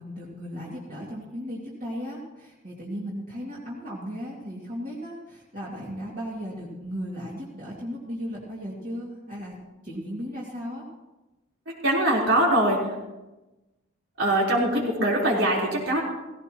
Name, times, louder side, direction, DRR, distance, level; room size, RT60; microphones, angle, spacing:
voice 1, 0.0-9.6 9.8-10.8, equal, 45° right, -6 dB, 2.4 m, -36 dB
voice 2, 11.7-12.9 14.2-16.0, right 1 dB, 80° right, -3 dB, 4.1 m, -23 dB
16.5 x 16.5 x 3.0 m, 1.1 s
head